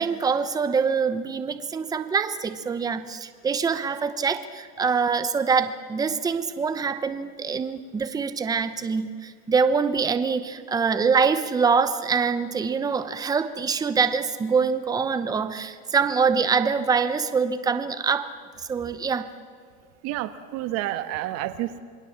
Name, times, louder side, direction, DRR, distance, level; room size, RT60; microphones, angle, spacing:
voice 1, 0.0-18.3 18.7-19.3, right 5 dB, 10° right, 10 dB, 0.8 m, -24 dB
voice 2, 20.0-21.8, right 14 dB, 55° right, 10 dB, 1.4 m, -29 dB
27.5 x 21.5 x 7.3 m, 2.2 s
cardioid pair, 165°, 31 cm